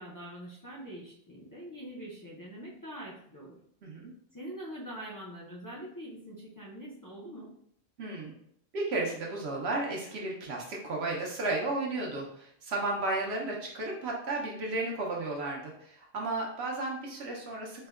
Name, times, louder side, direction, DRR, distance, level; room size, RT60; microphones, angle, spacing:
voice 1, 0.0-3.6 4.3-7.5, right 1 dB, 30° left, -5 dB, 0.4 m, -44 dB
voice 2, 3.8-4.1 8.0-8.3 8.7-17.9, right 2 dB, 70° right, -1 dB, 0.9 m, -33 dB
4.3 x 2.1 x 2.3 m, 0.69 s
omnidirectional pair, 1.1 m